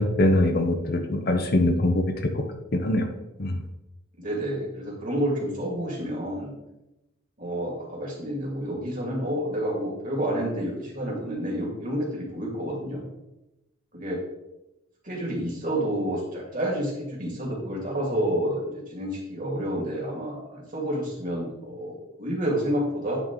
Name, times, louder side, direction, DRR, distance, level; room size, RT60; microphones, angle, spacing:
voice 1, 0.0-2.0 2.3-2.4 2.7-3.1 3.4-3.5, left 1 dB, 50° left, 5 dB, 0.7 m, -22 dB
voice 2, 4.2-6.5 7.4-13.0 13.9-14.2 15.0-23.2, equal, 40° right, -3 dB, 2.2 m, -29 dB
9.0 x 3.7 x 3.7 m, 0.94 s
head